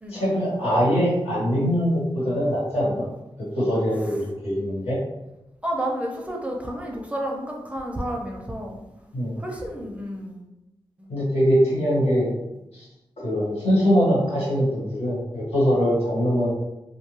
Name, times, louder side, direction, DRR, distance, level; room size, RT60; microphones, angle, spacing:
voice 1, 0.1-3.0 3.5-5.0 9.1-9.4 11.1-12.3 12.7-12.9 13.2-16.5, equal, 80° left, -8 dB, 1.5 m, -22 dB
voice 2, 5.6-8.8 9.4-10.4 11.0-11.1, right 1 dB, 10° right, 0 dB, 0.5 m, -31 dB
2.6 x 2.2 x 3.1 m, 0.95 s
wide cardioid pair, 75°, 10 cm